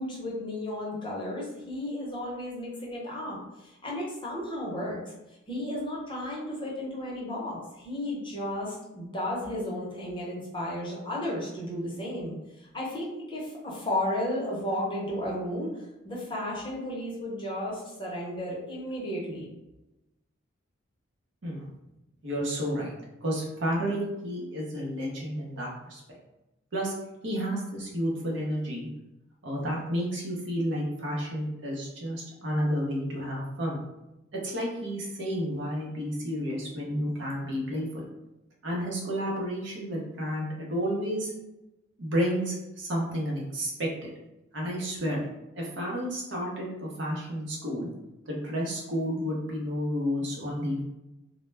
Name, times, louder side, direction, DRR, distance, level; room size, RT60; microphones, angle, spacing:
voice 1, 0.0-5.0 5.5-12.3 12.7-19.5, left 1 dB, 25° left, -5 dB, 0.7 m, -33 dB
voice 2, 22.2-22.9 23.2-26.0 26.7-26.9 27.2-28.9 29.4-33.8 34.4-38.0 38.6-41.3 42.0-44.1 44.5-45.2 45.5-47.9 48.3-50.8, equal, 65° right, -3 dB, 0.7 m, -31 dB
2.1 x 2.0 x 3.2 m, 0.96 s
head